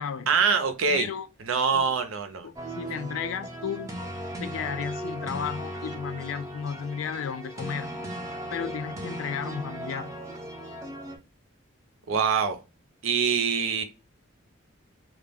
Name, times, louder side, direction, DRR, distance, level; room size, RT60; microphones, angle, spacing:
voice 1, 0.3-1.1 1.4-2.5 12.1-12.6 13.0-13.8, right 6 dB, 80° right, 0.5 m, -24 dB
voice 2, 0.9-1.3 1.7-1.9 2.4-3.9 4.4-8.0 8.5-10.1, left 7 dB, 80° left, 0.3 m, -33 dB
sound 1, 2.6-11.2, right 1 dB, 15° right, 0.4 m, -37 dB
2.3 x 2.0 x 3.4 m
head